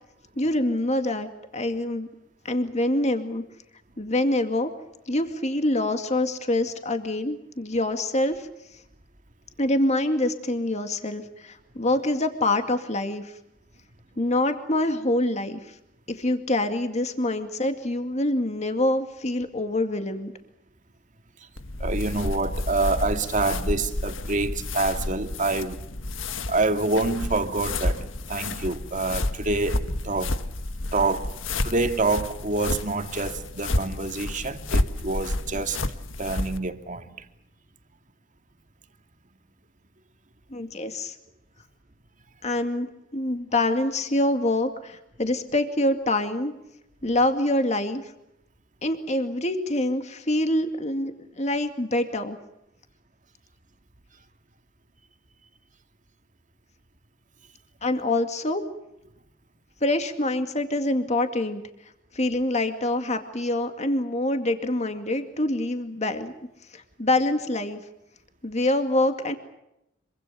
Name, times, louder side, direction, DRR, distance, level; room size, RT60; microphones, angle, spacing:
voice 1, 0.4-2.1 2.4-3.4 4.0-4.7 5.1-8.5 9.6-13.4 14.2-15.8 16.1-20.3 40.5-41.2 42.4-46.5 47.0-48.1 48.8-52.4 57.8-58.6 59.8-61.6 62.1-66.3 66.7-67.8 68.4-69.3, left 1 dB, 35° left, 2.3 m, -25 dB
sound 1, 21.6-36.6, left 2 dB, 80° left, 1.6 m, -30 dB
voice 2, 21.8-25.8 26.5-30.3 30.9-31.3 31.6-35.8 36.2-37.2, right 3 dB, 40° right, 2.4 m, -27 dB
26.5 x 24.5 x 7.0 m
head